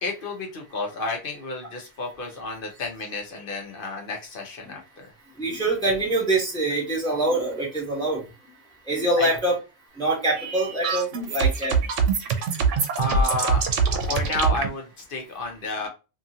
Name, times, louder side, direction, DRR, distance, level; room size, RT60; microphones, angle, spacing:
voice 1, 0.0-5.1 9.2-9.3 13.0-13.7 14.0-15.9, left 2 dB, 50° left, 2 dB, 1.0 m, -31 dB
voice 2, 5.4-8.2 8.9-9.6 10.0-11.7 14.1-14.2, right 2 dB, 5° left, -3 dB, 1.0 m, -24 dB
sound 1, 10.3-14.7, right 5 dB, 85° right, 1.0 m, -24 dB
2.9 x 2.5 x 2.7 m, 0.29 s
omnidirectional pair, 1.2 m